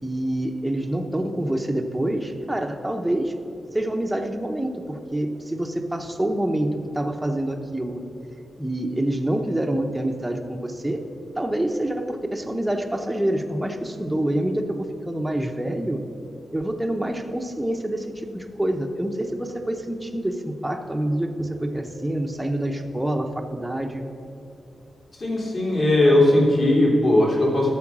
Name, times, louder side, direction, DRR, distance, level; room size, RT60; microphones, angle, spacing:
voice 1, 0.0-3.3 3.7-8.0 8.6-11.0 11.4-16.0 16.5-24.0, right 1 dB, 5° right, 3 dB, 0.7 m, -26 dB
voice 2, 25.2-27.7, left 1 dB, 45° left, -3 dB, 3.0 m, -18 dB
12.5 x 7.1 x 6.0 m, 2.8 s
wide cardioid pair, 140°, 0 cm